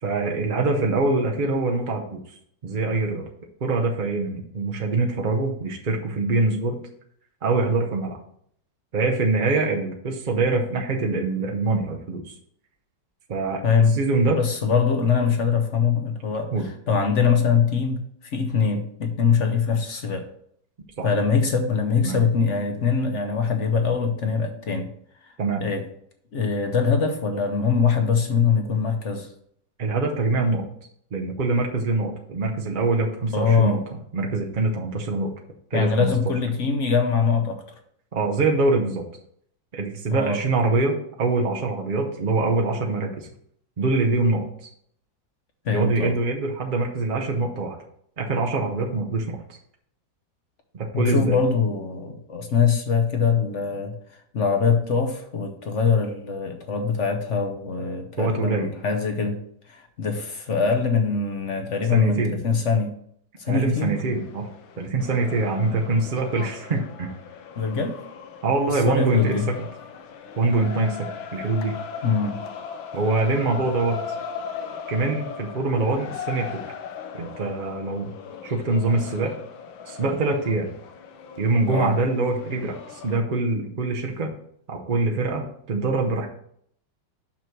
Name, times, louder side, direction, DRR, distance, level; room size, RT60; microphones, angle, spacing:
voice 1, 0.0-2.2 2.6-3.3 3.6-6.8 7.4-8.2 8.9-12.3 13.3-13.6 13.9-14.4 16.5-16.7 21.0-21.1 22.0-22.2 25.4-25.6 29.8-30.7 31.1-33.8 34.1-35.3 35.7-36.1 38.1-39.0 39.7-43.3 43.8-44.7 45.7-47.8 48.2-49.6 50.7-51.4 58.2-58.7 61.9-62.4 63.5-64.5 64.8-67.1 68.4-69.7 70.4-71.7 72.9-74.0 74.9-76.6 77.1-78.1 78.4-79.3 79.9-80.7 81.4-84.3 84.7-86.3, right 3 dB, 50° right, 1 dB, 0.6 m, -24 dB
voice 2, 13.6-14.0 14.4-18.0 18.3-20.3 21.0-24.9 25.6-25.9 26.3-29.3 33.3-33.8 35.7-37.6 40.1-40.4 45.6-46.1 50.9-54.0 54.3-59.4 59.7-63.0 63.4-64.0 67.6-68.0 68.9-69.5 72.0-72.4 81.7-81.9, left 5 dB, 50° left, 6 dB, 0.9 m, -23 dB
sound 1, 63.8-83.2, left 7 dB, 90° left, 1.6 m, -38 dB
6.2 x 5.9 x 4.5 m, 0.66 s
omnidirectional pair, 2.1 m